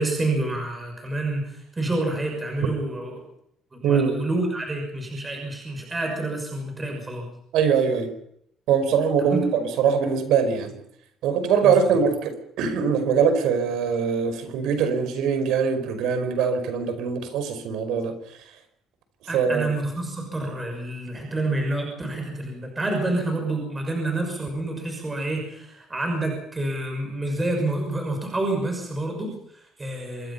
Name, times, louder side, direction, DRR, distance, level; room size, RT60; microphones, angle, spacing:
voice 1, 0.0-3.2 3.7-7.3 9.3-9.5 11.6-11.7 19.3-30.3, right 2 dB, 15° right, 2 dB, 6.1 m, -28 dB
voice 2, 3.8-4.2 7.5-8.1 8.7-10.8 11.2-18.1 19.3-19.7, right 6 dB, 80° right, 9 dB, 5.3 m, -22 dB
26.5 x 22.0 x 5.7 m, 0.73 s
cardioid pair, 180°, 0 cm